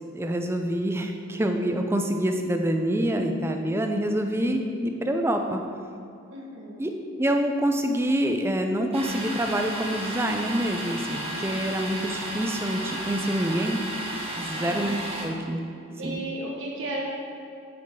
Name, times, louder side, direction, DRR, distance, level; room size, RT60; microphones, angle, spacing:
voice 1, 0.1-5.6 6.8-6.9 7.2-13.8 14.4-15.6 16.0-16.2, right 1 dB, 10° right, 4 dB, 0.4 m, -26 dB
voice 2, 6.3-6.8 14.6-15.0 16.0-17.0, right 1 dB, 70° right, -2 dB, 1.4 m, -34 dB
Domestic sounds home sounds, 8.9-15.3, right 1 dB, 30° right, 1.2 m, -33 dB
8.4 x 4.5 x 4.8 m, 2.5 s
head